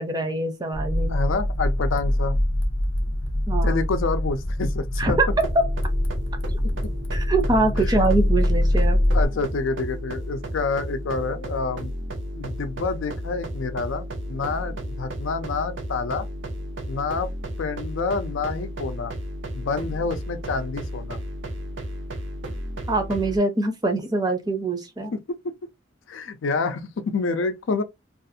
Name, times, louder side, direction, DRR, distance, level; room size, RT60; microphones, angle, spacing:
voice 1, 0.0-1.2 3.5-3.8 5.0-5.7 7.1-9.0 22.9-25.1, right 2 dB, 20° right, 0.5 m, -24 dB
sound 1, 0.7-9.3, left 1 dB, 30° left, 0.5 m, -23 dB
voice 2, 1.1-2.4 3.6-5.2 6.6-6.9 7.8-7.9 9.1-11.9 12.3-16.3 16.9-17.3 17.6-19.1 19.5-21.2 25.1-25.2 26.1-27.8, left 4 dB, 80° left, 0.4 m, -28 dB
sound 2, 5.3-23.4, equal, 70° right, 0.6 m, -33 dB
2.4 x 2.4 x 2.6 m
head